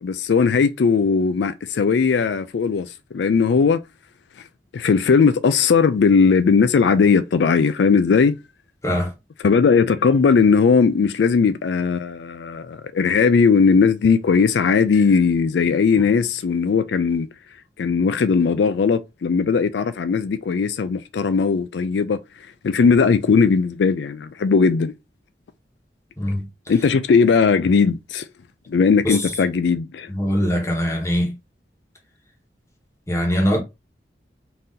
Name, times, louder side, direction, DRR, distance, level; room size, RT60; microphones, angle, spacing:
voice 1, 0.0-3.8 4.7-8.4 9.4-17.3 17.8-22.2 22.6-24.9 26.7-28.3 28.7-30.1, left 5 dB, 80° left, 0.4 m, -18 dB
voice 2, 30.1-31.3 33.1-33.6, equal, 15° left, 1.2 m, -21 dB
4.0 x 2.7 x 3.7 m
head